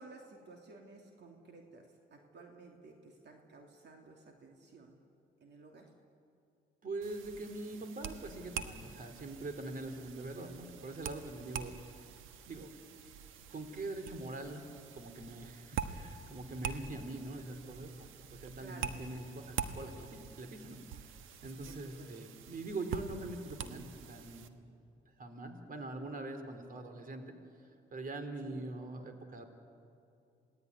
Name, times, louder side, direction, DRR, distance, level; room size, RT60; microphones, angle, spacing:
voice 1, 0.0-5.0 5.4-5.9 18.6-18.9 21.6-22.1 28.4-28.5, right 3 dB, 60° right, 2 dB, 2.9 m, -55 dB
voice 2, 6.8-11.7 12.5-12.7 13.5-14.7 14.9-24.6 25.2-27.3 27.9-29.4, right 2 dB, 45° right, 7 dB, 3.2 m, -43 dB
sound 1, 7.0-24.5, right 7 dB, 90° right, 1.3 m, -45 dB
27.5 x 18.0 x 9.6 m, 2.5 s
cardioid pair, 90°, 20 cm